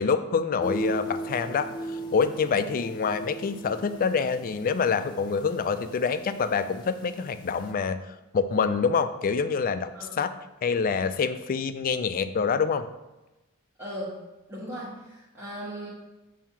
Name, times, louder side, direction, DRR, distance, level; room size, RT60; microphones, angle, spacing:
voice 1, 0.0-9.9 10.2-10.3 10.6-12.8, left 5 dB, 40° left, 11 dB, 0.3 m, -26 dB
sound 1, 0.6-7.7, right 1 dB, 20° left, 0.9 m, -38 dB
voice 2, 13.8-14.2 14.5-15.9, equal, 10° right, -9 dB, 1.1 m, -37 dB
7.1 x 2.8 x 5.7 m, 1.0 s
head